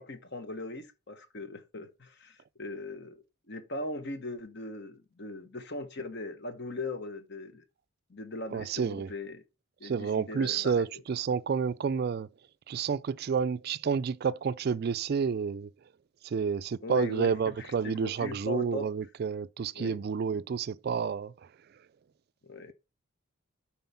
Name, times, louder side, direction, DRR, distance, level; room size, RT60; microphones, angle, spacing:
voice 1, 0.0-7.6 8.1-9.4 9.8-10.8 16.8-18.9 19.7-20.0 22.4-22.7, left 2 dB, 50° left, 1.1 m, -39 dB
voice 2, 8.5-9.1 9.8-12.3 12.7-15.7 16.2-21.3, right 6 dB, 50° right, 0.3 m, -30 dB
7.9 x 4.4 x 5.6 m
head